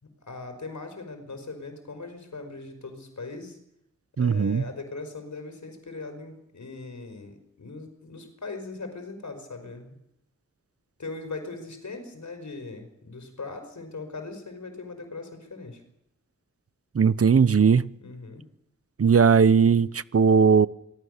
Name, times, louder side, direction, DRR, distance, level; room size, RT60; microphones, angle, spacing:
voice 1, 0.0-3.6 4.2-10.0 11.0-15.8 18.0-18.5, left 3 dB, 70° left, 5.2 m, -39 dB
voice 2, 4.2-4.7 16.9-17.9 19.0-20.7, right 6 dB, 50° right, 0.8 m, -19 dB
26.0 x 18.5 x 6.7 m
wide cardioid pair, 95°, 30 cm